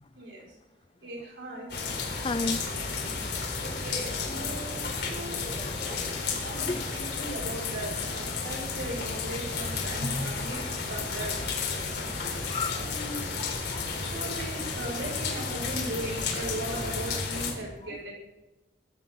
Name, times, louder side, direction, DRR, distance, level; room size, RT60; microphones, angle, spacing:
voice 1, 0.1-0.4 1.0-1.7 3.6-5.4 6.1-10.6 10.9-11.4 11.9-12.1 12.7-13.2 14.0-18.1, right 1 dB, 90° right, -4 dB, 6.2 m, -38 dB
sound 1, 1.7-17.5, left 4 dB, 60° left, 4.1 m, -32 dB
voice 2, 2.2-2.6 3.2-3.3 4.3-4.6 5.4-6.1 6.6-6.9 12.5-12.8 13.4-14.0, left 3 dB, 25° left, 15 dB, 0.4 m, -35 dB
24.0 x 14.0 x 4.0 m, 1.1 s
head